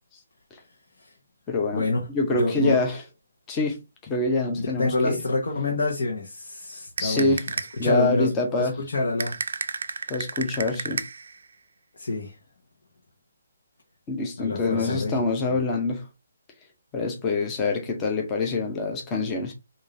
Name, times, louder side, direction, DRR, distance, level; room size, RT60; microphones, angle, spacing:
voice 1, 1.5-1.9 2.1-3.0 3.5-5.2 7.0-7.5 7.8-8.8 10.1-11.0 14.1-16.0 16.9-19.5, left 3 dB, 15° left, 0.7 m, -25 dB
voice 2, 2.3-2.8 4.6-7.3 7.8-9.4 12.0-12.4 14.4-15.6, left 2 dB, 70° left, 1.2 m, -27 dB
sound 1, 7.0-7.9 9.2-11.4, right 4 dB, 65° right, 0.4 m, -32 dB
4.9 x 2.7 x 2.5 m
hypercardioid pair, 165°, 0 cm